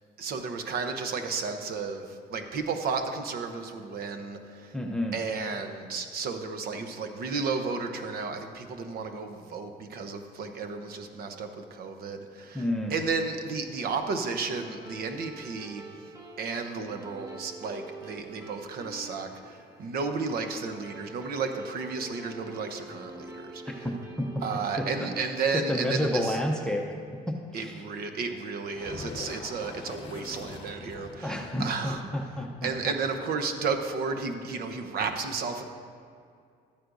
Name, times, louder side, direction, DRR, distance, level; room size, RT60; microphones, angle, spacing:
voice 1, 0.2-4.7 5.1-12.6 12.9-15.8 16.4-23.9 24.4-26.4 27.5-32.0 32.6-35.6, right 4 dB, 65° right, 6 dB, 0.9 m, -33 dB
voice 2, 4.7-5.2 12.5-12.9 24.2-24.3 25.0-25.1 25.7-26.8 27.5-27.8 31.2-32.7, left 1 dB, 5° left, 1 dB, 0.7 m, -30 dB
sound 1, 14.5-27.2, right 2 dB, 20° right, 1.1 m, -47 dB
sound 2, 28.6-34.2, left 3 dB, 30° left, 0.9 m, -44 dB
12.5 x 9.4 x 2.6 m, 2.3 s
cardioid pair, 110°, 17 cm